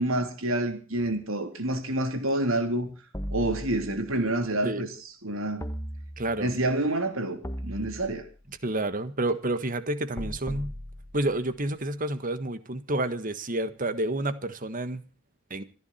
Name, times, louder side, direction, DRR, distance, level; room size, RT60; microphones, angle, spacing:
voice 1, 0.0-2.9 3.3-4.9 5.2-5.6 6.4-8.2, right 1 dB, 75° right, 3.4 m, -28 dB
sound 1, 3.1-4.2 5.6-6.6 7.4-8.5 10.2-11.6, equal, 15° left, 1.4 m, -37 dB
voice 2, 6.2-6.5 8.6-10.7 11.1-15.0 15.5-15.6, right 1 dB, 40° right, 1.5 m, -29 dB
27.0 x 11.0 x 4.3 m
head